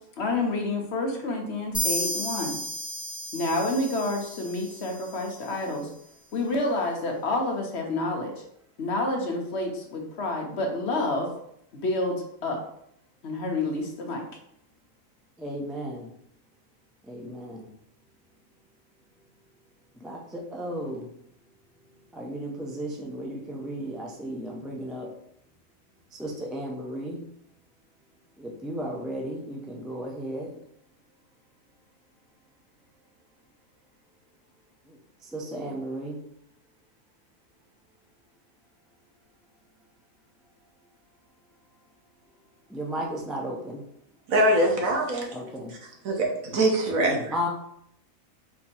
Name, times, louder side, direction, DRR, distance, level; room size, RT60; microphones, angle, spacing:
voice 1, 0.2-2.6 3.3-5.9 6.3-8.3 8.8-11.3 11.7-12.6 13.2-14.2, left 2 dB, 55° left, 1 dB, 1.0 m, -28 dB
sound 1, 1.7-5.3, equal, 15° left, 1.2 m, -33 dB
voice 2, 15.4-16.1 17.1-17.7 20.0-21.1 22.1-25.1 26.2-27.2 28.4-30.5 35.2-36.2 42.7-43.8 45.3-45.7 47.3-47.5, equal, ahead, -1 dB, 0.3 m, -34 dB
voice 3, 44.3-45.3 45.7-45.8 46.0-47.3, right 1 dB, 75° right, 1 dB, 1.3 m, -23 dB
4.3 x 2.8 x 4.3 m, 0.71 s
omnidirectional pair, 1.4 m